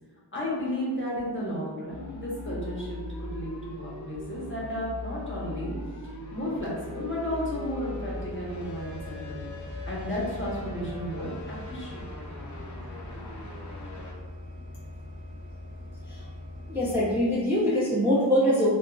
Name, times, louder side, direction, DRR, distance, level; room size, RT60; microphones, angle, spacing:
voice 1, 0.3-5.7 6.0-9.4 9.9-12.2, equal, 25° left, -6 dB, 0.9 m, -33 dB
sound 1, 1.9-14.1, left 1 dB, 45° left, 0.5 m, -40 dB
sound 2, 8.1-17.2, left 1 dB, 45° right, 0.7 m, -42 dB
voice 2, 16.7-18.7, equal, 5° right, -8 dB, 0.5 m, -23 dB
3.5 x 2.3 x 2.3 m, 1.4 s
wide cardioid pair, 60°, 43 cm